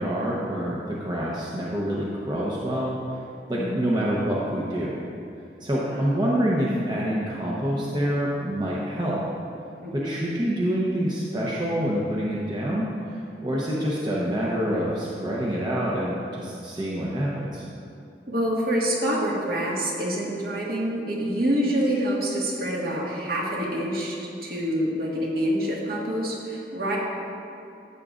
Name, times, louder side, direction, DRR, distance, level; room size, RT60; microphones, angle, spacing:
voice 1, 0.0-3.2 3.5-5.0 5.6-9.2 9.9-12.9 13.4-17.6, equal, 25° right, -5 dB, 0.8 m, -26 dB
voice 2, 3.5-3.8 5.9-6.2 9.8-10.1 18.3-27.0, equal, 60° right, -4 dB, 1.8 m, -26 dB
13.5 x 8.1 x 2.5 m, 2.6 s
head